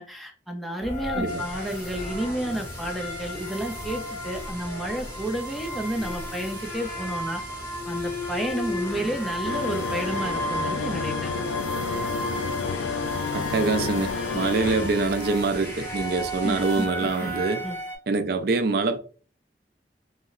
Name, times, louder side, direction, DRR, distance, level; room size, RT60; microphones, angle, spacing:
voice 1, 0.0-7.4 7.9-11.3 16.4-16.9 17.2-17.3 17.6-17.8, right 1 dB, ahead, 0.5 m, -31 dB
sound 1, 0.8-18.0, equal, 15° left, 1.0 m, -34 dB
sound 2, 1.2-16.9, right 1 dB, 25° right, 1.2 m, -42 dB
sound 3, 9.4-15.4, left 5 dB, 85° left, 0.3 m, -30 dB
voice 2, 13.3-17.6 18.1-19.0, right 3 dB, 60° right, 0.4 m, -25 dB
2.7 x 2.0 x 3.7 m
head